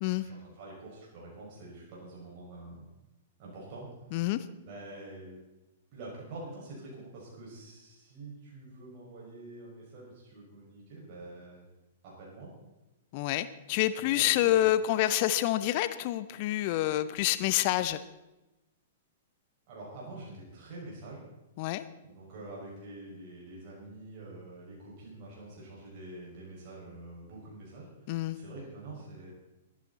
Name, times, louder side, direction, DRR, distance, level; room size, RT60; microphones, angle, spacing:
voice 1, 0.2-2.9 3.4-3.9 4.7-5.4 5.9-11.7 12.0-12.5 14.0-14.6 19.7-21.2 22.0-29.3, right 2 dB, 40° right, -4 dB, 5.9 m, -46 dB
voice 2, 4.1-4.4 13.1-18.0 21.6-21.8 28.1-28.4, left 14 dB, 40° left, 14 dB, 0.7 m, -27 dB
22.5 x 10.5 x 4.2 m, 1.0 s
figure-of-eight pair, 105°, 0 cm